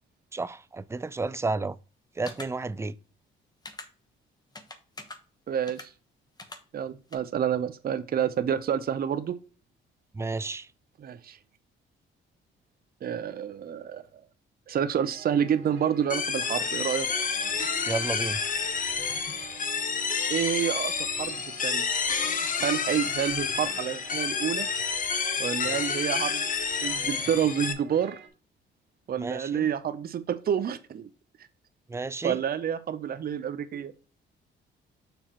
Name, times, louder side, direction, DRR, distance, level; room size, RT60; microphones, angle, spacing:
voice 1, 0.3-1.8 2.2-2.9 10.1-10.7 17.9-18.4 25.6-25.8 29.2-29.7 31.9-32.4, right 3 dB, 15° right, 0.4 m, -32 dB
sound 1, 2.3-2.5 3.7-3.9 4.6-5.2 5.7-5.9 6.4-6.6 7.1-7.2, left 2 dB, 20° left, 1.1 m, -41 dB
voice 2, 5.5-5.9 6.7-9.4 11.0-11.4 13.0-14.0 14.7-17.1 20.3-21.8 22.6-24.7 25.4-26.4 26.8-28.2 29.1-31.1 32.2-33.9, right 9 dB, 50° right, 0.7 m, -28 dB
sound 2, 15.1-28.3, right 9 dB, 80° right, 1.6 m, -48 dB
sound 3, 16.1-27.7, left 5 dB, 40° left, 1.0 m, -29 dB
7.0 x 5.6 x 3.0 m
cardioid pair, 90°, 20 cm